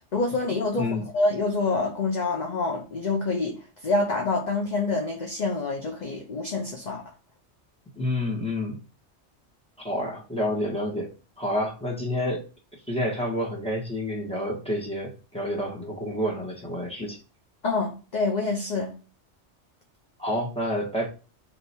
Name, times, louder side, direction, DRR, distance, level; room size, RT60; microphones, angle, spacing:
voice 1, 0.1-7.0 17.6-19.0, left 3 dB, 45° left, 0.8 m, -27 dB
voice 2, 7.9-8.8 9.8-12.4 12.9-17.2 20.2-21.1, left 1 dB, 5° left, 1.4 m, -29 dB
3.4 x 2.9 x 4.3 m
omnidirectional pair, 1.2 m